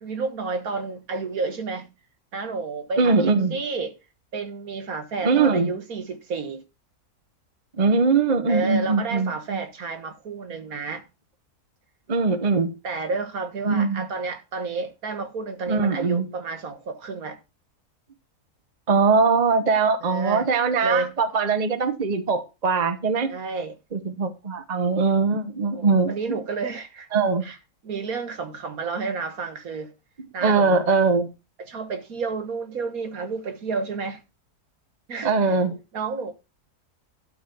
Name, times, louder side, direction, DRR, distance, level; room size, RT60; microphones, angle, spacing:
voice 1, 0.0-1.9 2.3-3.9 4.3-6.6 8.5-11.0 12.8-17.4 20.0-20.5 20.8-21.1 23.3-23.8 25.7-27.1 27.4-27.6 27.8-29.9 30.3-30.8 31.6-34.2 35.1-35.3 35.9-36.3, right 4 dB, 65° right, 1.9 m, -30 dB
voice 2, 3.0-3.6 5.2-5.7 7.8-9.6 12.1-12.7 13.6-14.1 15.7-16.3 18.9-23.3 23.9-26.4 27.1-27.4 30.4-31.3 35.2-35.8, right 4 dB, 30° right, 1.0 m, -21 dB
12.5 x 4.4 x 6.9 m
omnidirectional pair, 1.7 m